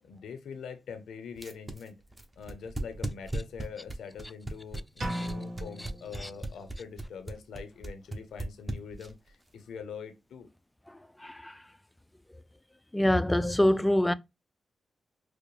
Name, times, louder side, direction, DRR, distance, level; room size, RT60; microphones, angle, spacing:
voice 1, 0.0-2.0 2.4-10.5, left 6 dB, 85° left, 0.6 m, -44 dB
sound 1, 1.4-9.3, right 2 dB, 25° right, 0.8 m, -36 dB
sound 2, 5.0-6.9, right 1 dB, 70° right, 1.4 m, -38 dB
voice 2, 12.9-14.1, left 1 dB, 10° left, 0.3 m, -25 dB
4.8 x 2.0 x 3.1 m
cardioid pair, 75°, 0 cm